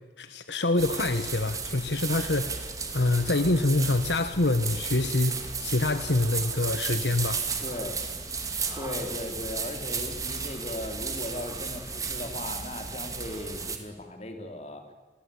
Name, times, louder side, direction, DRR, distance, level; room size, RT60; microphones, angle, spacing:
voice 1, 0.2-2.6 2.9-7.4, left 2 dB, 70° left, 10 dB, 1.3 m, -26 dB
sound 1, 0.8-13.8, right 5 dB, 20° right, 2.5 m, -34 dB
voice 2, 7.6-8.0 8.8-14.8, left 2 dB, 35° left, 5 dB, 3.6 m, -37 dB
27.5 x 21.5 x 8.6 m, 1.3 s
head